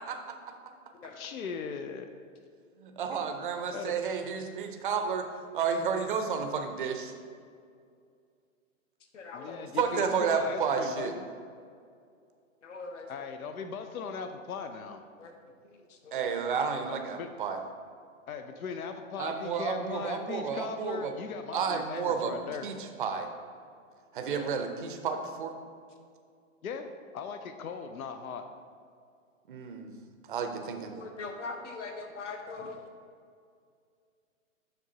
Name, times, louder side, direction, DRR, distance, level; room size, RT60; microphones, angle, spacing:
voice 1, 0.1-0.5 2.8-5.3 5.5-7.1 9.8-11.1 16.1-17.6 19.2-21.1 21.5-22.3 22.6-23.3 24.1-25.6 29.5-29.9 30.3-31.0, right 6 dB, 40° right, 6 dB, 0.5 m, -31 dB
voice 2, 1.2-2.1 3.7-4.0 9.3-11.3 13.1-15.0 16.9-17.3 18.3-22.7 26.6-28.5, left 6 dB, 80° left, 7 dB, 0.7 m, -39 dB
voice 3, 9.1-9.6 12.6-13.3 15.2-15.3 15.6-16.2 24.3-24.5 31.0-32.8, left 3 dB, 60° left, 4 dB, 1.1 m, -41 dB
7.7 x 6.0 x 2.8 m, 2.3 s
hypercardioid pair, 160°, 41 cm